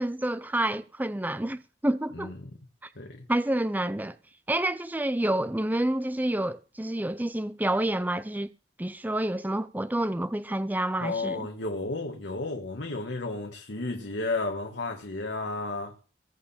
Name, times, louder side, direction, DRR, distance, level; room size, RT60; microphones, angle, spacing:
voice 1, 0.0-2.3 3.3-4.2 4.5-8.5 8.8-11.5, right 1 dB, 10° right, 0.6 m, -28 dB
voice 2, 2.1-2.5 3.0-3.2 11.0-16.0, left 3 dB, 75° left, 1.8 m, -33 dB
21.5 x 7.5 x 4.4 m
head